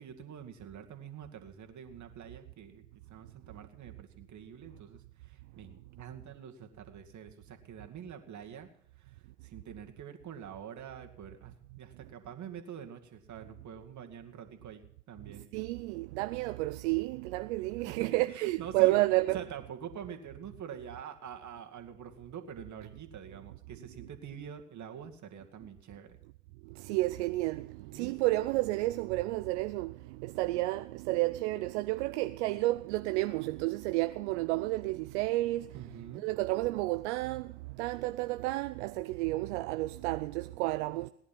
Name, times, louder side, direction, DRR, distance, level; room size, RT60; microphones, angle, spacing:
voice 1, 0.0-8.7 9.0-15.5 17.9-19.0 19.3-26.2 27.9-28.2 35.7-36.2, right 8 dB, 55° right, 2.3 m, -46 dB
voice 2, 15.5-19.4 26.8-35.8 36.1-37.5 37.8-41.1, right 19 dB, 80° right, 0.5 m, -31 dB
18.0 x 10.5 x 5.9 m
hypercardioid pair, 50°, 34 cm